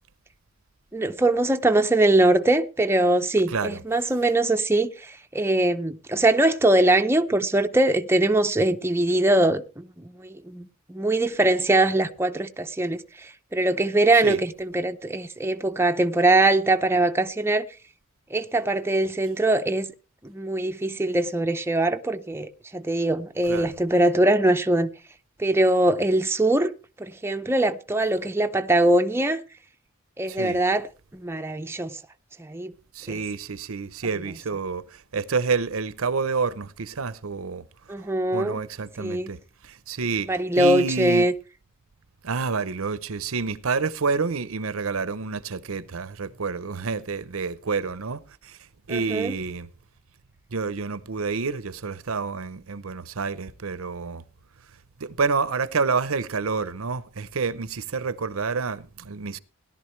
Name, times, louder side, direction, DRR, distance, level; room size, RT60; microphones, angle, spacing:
voice 1, 0.9-9.9 10.2-13.0 13.5-17.7 18.3-19.9 20.2-24.9 25.4-26.7 27.0-29.4 30.2-30.9 31.1-32.0 32.4-32.7 33.1-33.2 37.9-38.6 39.0-39.3 40.3-41.3 48.9-49.3, right 2 dB, 10° right, 0.6 m, -22 dB
voice 2, 3.5-3.8 14.2-14.4 23.5-23.7 30.3-30.6 32.9-37.6 38.3-40.3 40.5-41.3 42.2-48.6 48.9-49.7 50.5-54.2 55.0-59.4, right 4 dB, 75° right, 0.7 m, -28 dB
17.0 x 11.5 x 3.2 m
head